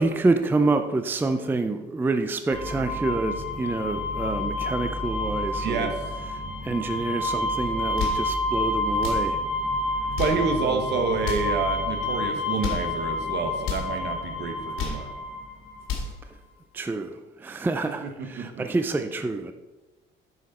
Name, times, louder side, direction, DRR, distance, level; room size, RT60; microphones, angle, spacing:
voice 1, 0.0-5.9 6.6-9.4 10.6-10.8 16.7-17.1 17.4-19.5, right 3 dB, 10° right, 8 dB, 0.4 m, -27 dB
sound 1, 2.5-15.9, left 2 dB, 50° left, 2.5 m, -29 dB
voice 2, 5.6-5.9 10.2-15.1 18.0-18.4, right 4 dB, 55° right, 5 dB, 1.4 m, -28 dB
sound 2, 7.8-8.3 8.9-9.3 10.0-10.5 11.2-11.6 12.4-12.9 13.6-13.9 14.6-15.1 15.6-16.2, left 5 dB, 85° left, 2.3 m, -32 dB
9.2 x 6.4 x 4.2 m, 1.1 s
cardioid pair, 140°, 21 cm